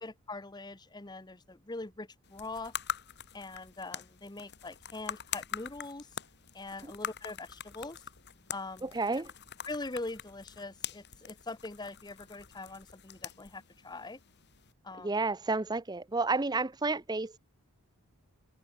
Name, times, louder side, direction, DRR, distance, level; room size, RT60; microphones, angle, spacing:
voice 1, 0.0-2.7 3.3-6.1 6.5-8.0 8.5-9.2 9.6-14.2 14.8-15.1, left 2 dB, 20° left, 0.9 m, -42 dB
sound 1, 2.2-14.7, left 9 dB, 50° left, 2.4 m, -44 dB
voice 2, 8.8-9.3 15.0-17.4, right 3 dB, 20° right, 0.7 m, -31 dB
head